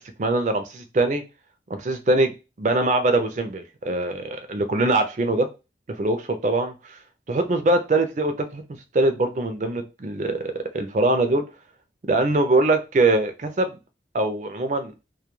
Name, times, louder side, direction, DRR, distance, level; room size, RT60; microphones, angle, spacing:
voice 1, 0.2-1.2 1.7-2.3 2.6-5.5 6.0-7.0 7.3-8.6 8.9-11.4 12.1-13.8 14.1-14.9, right 2 dB, 40° right, 7 dB, 0.4 m, -22 dB
2.3 x 2.2 x 2.9 m, 0.28 s
head